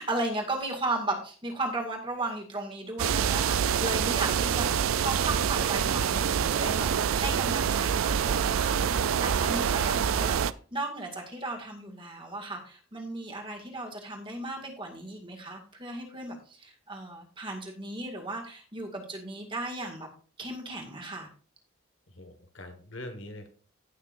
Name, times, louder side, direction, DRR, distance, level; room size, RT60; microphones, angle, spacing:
voice 1, 0.0-8.8 9.2-20.1 20.4-21.3, right 2 dB, 25° right, 1 dB, 2.0 m, -35 dB
sound 1, 3.0-10.5, right 8 dB, 85° right, 0.4 m, -26 dB
voice 2, 22.1-23.5, left 1 dB, 70° left, 6 dB, 1.6 m, -44 dB
16.0 x 6.4 x 2.6 m, 0.41 s
head